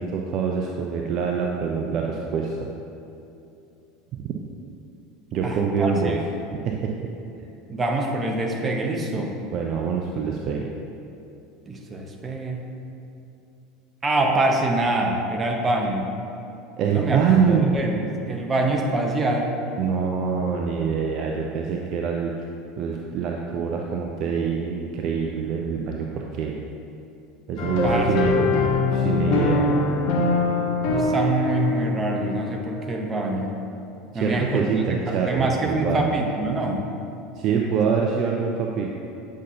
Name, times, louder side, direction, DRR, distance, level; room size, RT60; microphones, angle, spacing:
voice 1, 0.0-2.7 4.2-4.3 5.3-6.2 6.6-7.1 7.3-7.4 9.5-10.7 16.8-17.8 19.8-22.3 22.8-26.6 27.5-29.7 34.1-36.2 37.4-38.9, right 6 dB, 45° right, 0 dB, 0.5 m, -25 dB
voice 2, 5.4-6.2 7.7-9.3 11.7-12.6 14.0-16.1 16.9-19.6 27.8-28.2 30.8-33.6 34.1-36.8, right 2 dB, 20° right, 1 dB, 0.9 m, -25 dB
sound 1, 27.6-33.2, left 3 dB, 55° left, 1.0 m, -23 dB
8.3 x 5.6 x 2.8 m, 2.7 s
figure-of-eight pair, 75°, 0 cm